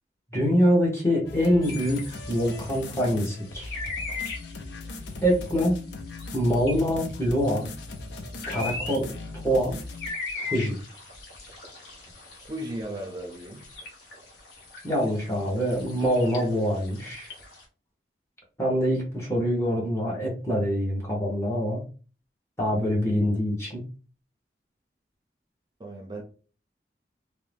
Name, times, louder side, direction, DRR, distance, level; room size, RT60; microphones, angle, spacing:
voice 1, 0.3-3.8 5.2-5.8 6.3-7.7 8.5-9.2 9.4-9.8 10.3-10.8 14.8-17.3 18.6-21.9 22.6-23.9, equal, 15° left, 0.9 m, -25 dB
sound 1, 1.2-10.1, left 2 dB, 90° left, 0.5 m, -39 dB
sound 2, 1.6-17.6, left 3 dB, 65° left, 0.9 m, -40 dB
voice 2, 12.4-13.7 25.8-26.2, right 1 dB, 25° right, 0.5 m, -36 dB
2.6 x 2.1 x 3.2 m
head